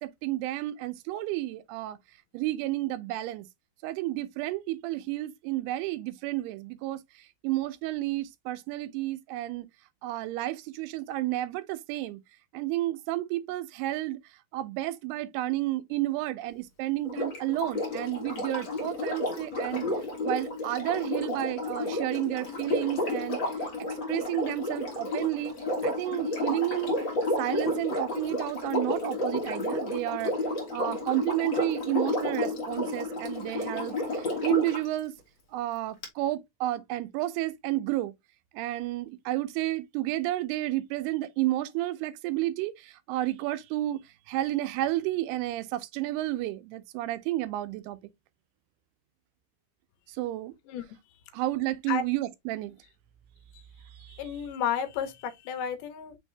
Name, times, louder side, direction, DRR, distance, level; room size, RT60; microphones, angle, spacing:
voice 1, 0.0-2.0 2.3-3.5 3.8-7.0 7.4-9.7 10.0-12.2 12.5-14.2 14.5-19.8 20.2-23.4 24.1-25.6 25.8-27.0 27.4-30.3 30.7-35.1 35.5-38.1 38.5-44.0 44.3-48.0 50.2-50.5 51.3-52.8 54.1-54.2, right 16 dB, 85° right, 2.6 m, -31 dB
Sink (filling or washing), 17.0-34.9 36.0-36.1, left 2 dB, 60° left, 1.2 m, -31 dB
voice 2, 54.2-56.2, left 8 dB, 80° left, 2.6 m, -32 dB
6.0 x 2.7 x 3.1 m
omnidirectional pair, 4.6 m